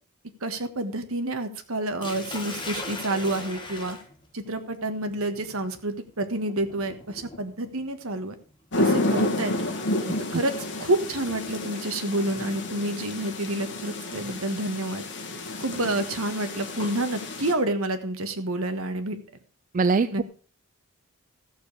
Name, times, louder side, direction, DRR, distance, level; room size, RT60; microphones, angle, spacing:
voice 1, 0.4-4.0 4.3-8.3 8.8-9.5 10.3-15.0 15.6-19.2 20.1-20.2, right 1 dB, 70° right, 8 dB, 1.4 m, -29 dB
Sink (filling or washing), 2.0-12.0 13.1-13.4 13.9-14.0 15.5-17.0, left 2 dB, 20° left, 1.8 m, -42 dB
sound 1, 8.7-17.5, left 2 dB, 55° left, 2.1 m, -30 dB
voice 2, 19.7-20.2, right 4 dB, 35° right, 13 dB, 0.4 m, -22 dB
14.5 x 7.0 x 4.9 m, 0.40 s
head